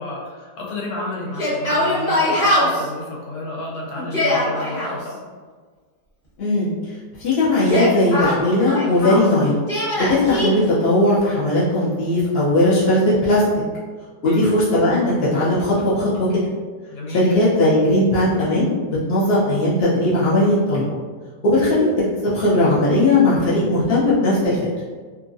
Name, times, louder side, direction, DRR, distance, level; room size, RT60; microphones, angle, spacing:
voice 1, 0.0-5.2 14.2-14.5 16.9-17.3, left 2 dB, 85° left, -3 dB, 1.4 m, -31 dB
Yell, 1.3-2.9 4.0-4.9 7.5-9.3 9.7-10.5, left 1 dB, 40° left, 1.3 m, -21 dB
voice 2, 6.4-6.7 7.2-9.6 10.0-13.5 14.2-16.4 17.1-20.8 21.4-24.6, left 1 dB, 70° left, -9 dB, 0.5 m, -18 dB
2.9 x 2.4 x 2.5 m, 1.5 s
omnidirectional pair, 1.8 m